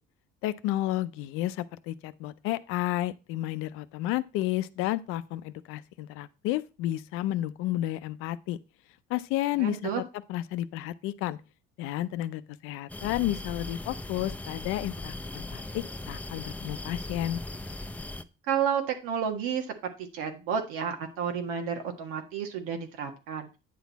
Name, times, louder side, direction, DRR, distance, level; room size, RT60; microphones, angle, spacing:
voice 1, 0.4-8.6 9.1-10.0 10.3-11.4 11.8-17.4, left 14 dB, 85° left, 0.6 m, -31 dB
voice 2, 9.6-10.0 18.5-23.6, right 7 dB, 85° right, 1.7 m, -31 dB
sound 1, 12.9-18.2, left 2 dB, 5° left, 0.6 m, -39 dB
9.4 x 6.2 x 4.1 m
cardioid pair, 100°, 21 cm